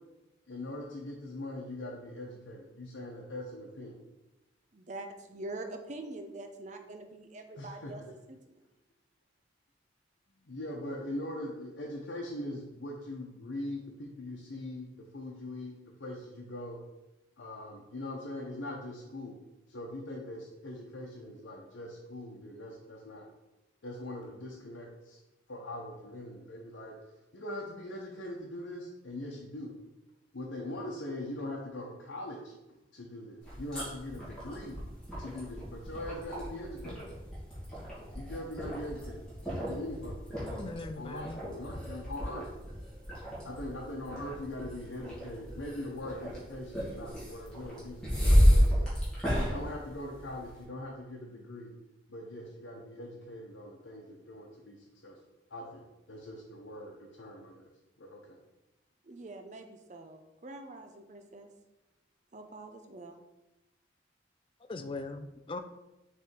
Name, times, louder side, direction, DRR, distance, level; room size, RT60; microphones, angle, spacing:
voice 1, 0.5-4.0 7.6-8.2 10.4-16.8 17.4-19.4 19.7-23.2 23.8-25.2 25.5-27.0 27.3-29.7 30.3-34.8 35.2-37.0 38.1-39.2 39.6-40.4 40.9-42.4 43.4-48.9 49.3-51.7 52.1-54.8 55.0-55.2 55.5-57.7 58.0-58.2, left 1 dB, 80° left, -3 dB, 0.9 m, -41 dB
voice 2, 4.7-8.0 8.3-8.6 59.0-61.5 62.3-63.2, right 2 dB, 40° right, 6 dB, 0.6 m, -44 dB
sound 1, 33.4-50.6, equal, 5° left, 2.2 m, -32 dB
voice 3, 40.4-41.4 64.7-65.6, left 3 dB, 30° left, 8 dB, 0.4 m, -40 dB
6.4 x 3.4 x 4.5 m, 0.97 s
head